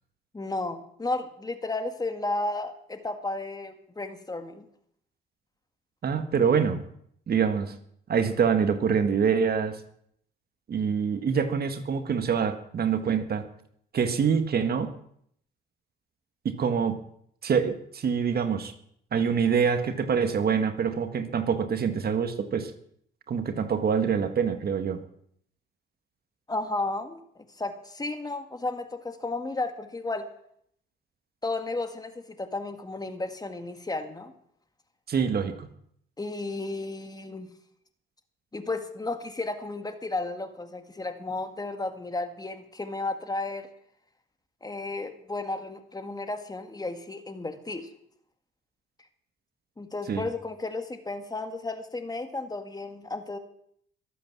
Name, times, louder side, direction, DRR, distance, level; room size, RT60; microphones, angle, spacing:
voice 1, 0.3-4.7 26.5-27.2 27.6-30.3 31.4-34.3 36.2-37.5 38.5-43.7 44.6-47.9 49.8-53.4, left 2 dB, 20° left, 8 dB, 2.0 m, -33 dB
voice 2, 6.0-6.8 7.3-7.7 8.1-9.8 10.7-13.4 13.9-14.9 16.4-17.0 17.4-18.7 19.1-22.7 23.3-25.0 35.1-35.7 50.1-50.2, right 6 dB, 50° right, 9 dB, 1.7 m, -25 dB
22.0 x 8.4 x 7.4 m, 0.68 s
cardioid pair, 90°, 20 cm